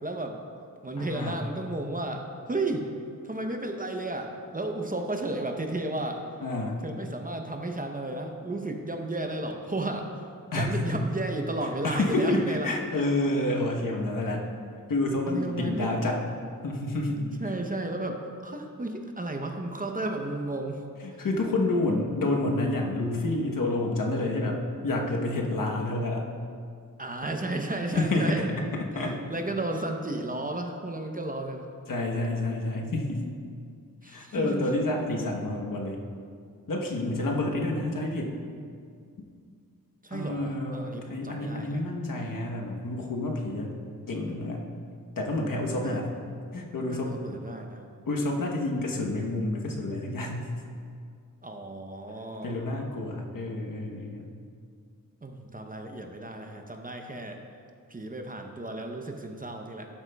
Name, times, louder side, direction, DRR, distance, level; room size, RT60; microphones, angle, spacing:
voice 1, 0.0-0.4 0.8-2.9 3.2-6.2 6.8-10.1 10.5-12.7 15.3-16.0 17.2-20.8 27.0-28.5 28.9-31.7 34.0-34.7 40.0-41.8 45.8-46.1 46.9-47.8 51.4-52.6 55.2-57.4 57.9-59.9, right 2 dB, 25° right, 3 dB, 0.7 m, -33 dB
voice 2, 1.0-1.4 6.4-6.8 10.5-11.0 11.8-14.4 14.9-16.2 16.6-17.3 21.0-26.3 28.0-28.5 28.9-29.2 31.9-33.3 34.1-36.0 36.7-38.4 40.1-43.8 44.1-44.6 45.2-46.1 46.5-47.2 48.1-50.5 52.4-54.3, left 2 dB, 65° left, 0 dB, 1.1 m, -29 dB
12.0 x 7.9 x 2.3 m, 2.2 s
wide cardioid pair, 85°, 35 cm